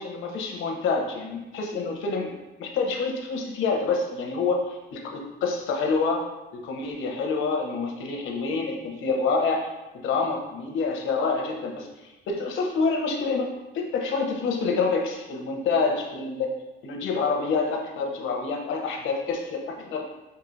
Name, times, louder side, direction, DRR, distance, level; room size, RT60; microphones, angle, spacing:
voice 1, 0.0-2.3 2.6-6.2 6.5-9.7 10.0-13.5 13.7-16.5 16.8-20.0, left 4 dB, 80° left, 2 dB, 0.8 m, -27 dB
5.8 x 2.7 x 2.6 m, 1.0 s
cardioid pair, 90°, 20 cm